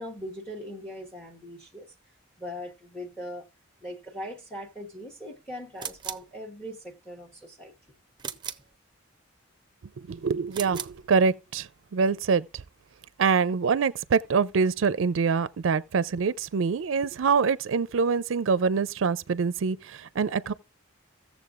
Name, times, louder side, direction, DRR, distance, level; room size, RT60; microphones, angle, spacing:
voice 1, 0.0-1.9 2.4-3.5 3.8-7.7, equal, 5° left, 1.1 m, -40 dB
sound 1, 5.8-6.3 8.2-8.7 10.5-11.0, right 8 dB, 25° right, 0.6 m, -37 dB
voice 2, 10.0-12.6 13.2-20.5, right 5 dB, 70° right, 0.4 m, -25 dB
16.5 x 7.1 x 2.4 m
head